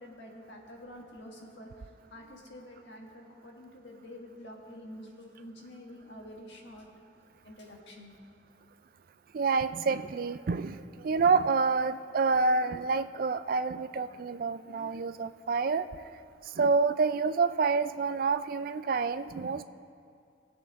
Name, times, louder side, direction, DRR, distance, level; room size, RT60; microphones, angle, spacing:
voice 1, 0.0-6.9 7.4-8.1, left 1 dB, 65° left, 0 dB, 1.7 m, -48 dB
voice 2, 9.3-15.9 16.6-19.6, right 4 dB, 45° right, 12 dB, 0.3 m, -28 dB
19.0 x 7.9 x 3.6 m, 2.4 s
head